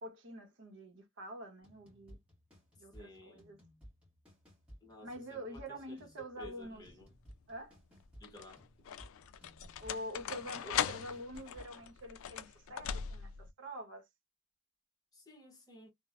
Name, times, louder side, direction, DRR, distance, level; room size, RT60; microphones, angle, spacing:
voice 1, 0.0-2.2 2.8-3.6 5.0-6.8 7.5-7.8 9.8-14.1, equal, 60° right, 0.8 m, -46 dB
sound 1, 1.6-12.0, equal, 5° right, 1.2 m, -59 dB
voice 2, 2.9-3.4 4.8-7.1 8.2-8.7 10.6-10.9 15.1-15.9, equal, 20° left, 0.7 m, -54 dB
sound 2, 6.7-7.2 8.0-13.5, left 8 dB, 75° left, 0.3 m, -40 dB
3.0 x 2.0 x 2.3 m
head